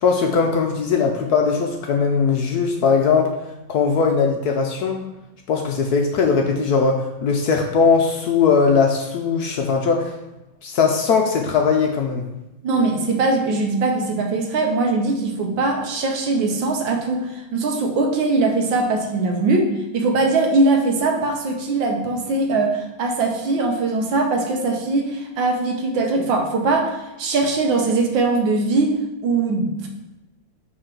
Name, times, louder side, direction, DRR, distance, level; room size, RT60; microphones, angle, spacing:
voice 1, 0.0-3.3 3.7-5.0 5.5-10.2 10.6-12.2, left 5 dB, 70° left, 2 dB, 1.0 m, -19 dB
voice 2, 12.6-19.7 19.9-29.0 29.2-29.9, right 3 dB, 80° right, 2 dB, 1.7 m, -21 dB
5.4 x 3.9 x 5.7 m, 0.97 s
omnidirectional pair, 2.1 m